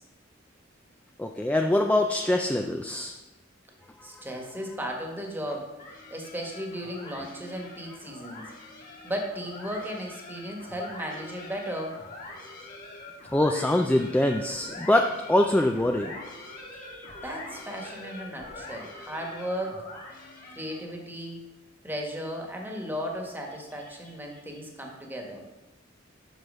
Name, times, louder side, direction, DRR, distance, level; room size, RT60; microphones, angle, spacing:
voice 1, 1.2-3.1 4.1-4.2 13.3-16.2 16.8-17.2, left 1 dB, 5° left, 4 dB, 0.4 m, -24 dB
voice 2, 4.0-5.7 6.1-8.4 9.0-12.0 17.2-19.8 20.5-21.5 21.8-25.4, equal, 10° right, 1 dB, 1.4 m, -35 dB
sound 1, 5.8-20.9, left 2 dB, 45° left, 2.1 m, -44 dB
8.1 x 6.1 x 5.4 m, 1.1 s
head